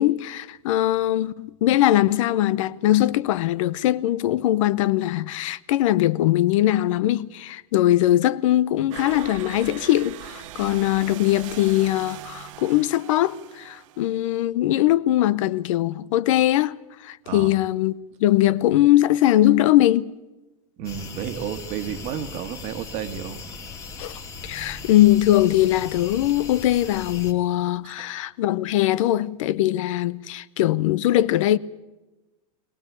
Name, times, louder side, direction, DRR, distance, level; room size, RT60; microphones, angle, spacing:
voice 1, 0.0-16.8 17.0-17.9 18.2-20.1 24.0-31.6, left 14 dB, 65° left, 0.7 m, -21 dB
sound 1, 8.9-14.4, right 13 dB, 65° right, 1.1 m, -40 dB
voice 2, 17.2-17.6 20.8-23.4 27.8-28.1, right 9 dB, 35° right, 1.5 m, -32 dB
sound 2, 20.8-27.3, left 4 dB, 15° left, 2.1 m, -39 dB
22.0 x 18.5 x 8.4 m
supercardioid pair, 165°, 18 cm